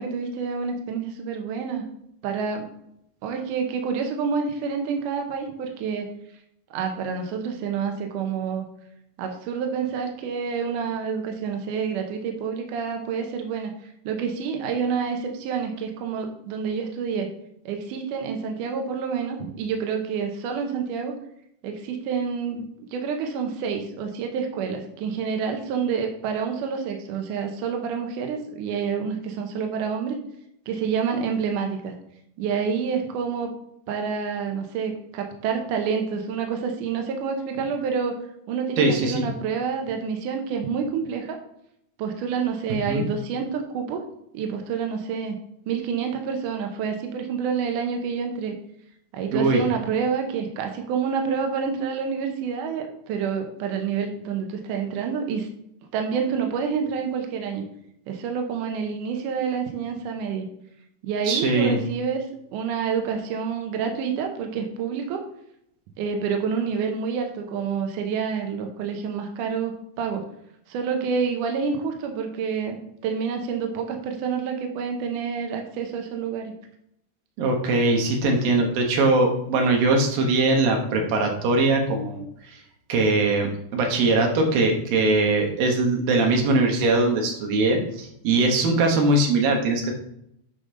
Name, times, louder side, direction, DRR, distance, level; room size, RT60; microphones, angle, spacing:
voice 1, 0.0-1.9 2.2-2.7 3.2-6.1 6.7-8.6 9.2-13.7 14.1-17.3 17.7-21.1 21.6-22.6 22.9-30.2 30.7-32.0 32.4-33.5 33.9-38.2 38.5-41.4 42.0-44.0 44.3-45.4 45.7-48.5 49.1-55.5 55.9-57.6 58.1-60.5 61.0-65.2 66.0-70.2 70.7-76.5, right 6 dB, 85° right, 4 dB, 1.8 m, -28 dB
voice 2, 38.8-39.2 42.9-43.0 49.3-49.6 61.3-61.8 77.4-82.6 82.9-89.9, right 2 dB, 65° right, 2 dB, 2.6 m, -21 dB
8.9 x 5.2 x 3.8 m, 0.75 s
omnidirectional pair, 5.0 m